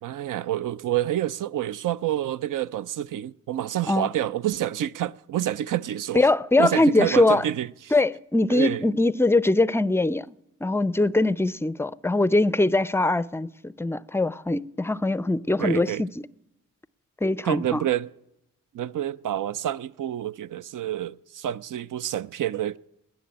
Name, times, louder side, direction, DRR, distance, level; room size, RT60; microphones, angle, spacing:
voice 1, 0.0-6.3 6.6-7.9 8.5-8.9 15.6-16.0 17.4-18.1 18.7-22.8, right 12 dB, 65° right, 0.5 m, -28 dB
voice 2, 6.1-7.4 7.9-10.3 10.6-16.1 17.2-17.8, left 2 dB, 5° left, 0.5 m, -22 dB
20.0 x 7.0 x 8.6 m
supercardioid pair, 45°, 33 cm